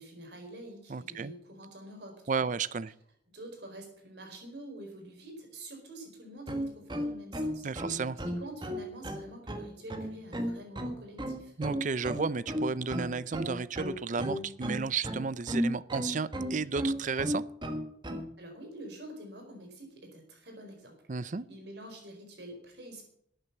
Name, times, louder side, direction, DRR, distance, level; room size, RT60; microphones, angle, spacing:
voice 1, 0.0-2.5 3.3-7.7 8.2-11.5 18.4-23.1, right 1 dB, 65° right, 3 dB, 4.7 m, -47 dB
voice 2, 0.9-1.3 2.3-2.9 7.6-8.2 11.6-17.4 21.1-21.5, right 5 dB, 45° right, 18 dB, 0.5 m, -33 dB
sound 1, 6.4-18.3, equal, 25° right, 1.4 m, -34 dB
12.5 x 8.8 x 8.2 m, 0.70 s
head